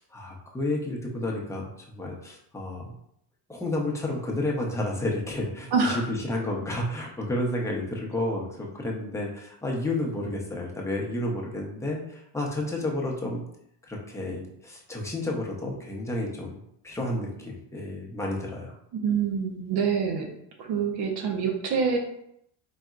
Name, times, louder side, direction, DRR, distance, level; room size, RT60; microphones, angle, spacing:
voice 1, 0.0-2.9 3.5-5.9 6.3-13.4 13.8-16.6 16.8-18.7, left 1 dB, 5° left, -2 dB, 0.8 m, -31 dB
voice 2, 5.7-6.1 18.9-20.3 20.6-22.0, right 5 dB, 55° right, 2 dB, 0.8 m, -26 dB
4.1 x 3.4 x 2.4 m, 0.74 s
cardioid pair, 115°, 45 cm